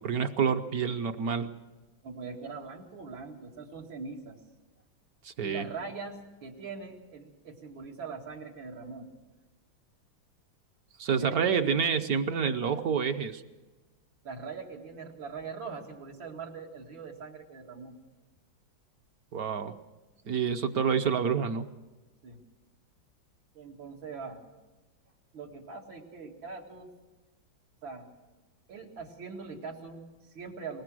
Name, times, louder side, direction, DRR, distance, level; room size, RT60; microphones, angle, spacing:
voice 1, 0.0-1.5 5.2-5.7 11.0-13.4 19.3-19.7 20.3-21.7, right 6 dB, 60° right, 8 dB, 1.1 m, -28 dB
voice 2, 2.0-4.4 5.4-9.1 11.2-11.8 14.2-17.9 22.2-22.4 23.5-24.4 25.3-26.9 27.8-28.1 28.7-30.8, right 4 dB, 85° right, 0 dB, 3.0 m, -42 dB
21.0 x 20.0 x 6.2 m, 1.2 s
omnidirectional pair, 2.1 m